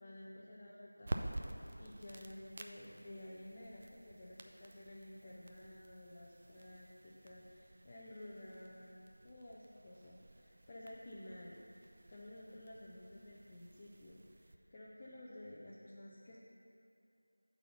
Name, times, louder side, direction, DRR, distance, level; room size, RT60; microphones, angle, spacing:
voice 1, 0.0-16.4, left 1 dB, 20° left, -6 dB, 0.5 m, -53 dB
sound 1, 1.0-14.5, right 2 dB, 30° right, 0.4 m, -50 dB
8.3 x 4.1 x 6.8 m, 2.8 s
figure-of-eight pair, 170°, 0 cm